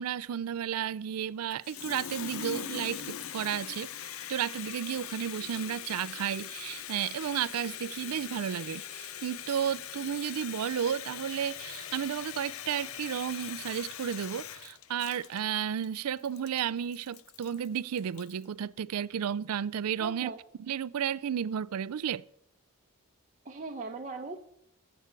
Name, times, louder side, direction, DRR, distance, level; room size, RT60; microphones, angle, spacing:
voice 1, 0.0-3.9 4.3-20.3 20.6-22.2, right 9 dB, 85° right, 0.4 m, -33 dB
Water tap faucet, 1.5-18.4, left 9 dB, 65° left, 0.6 m, -41 dB
voice 2, 20.0-20.4 23.4-24.4, right 4 dB, 35° right, 0.8 m, -38 dB
22.5 x 7.9 x 4.6 m
head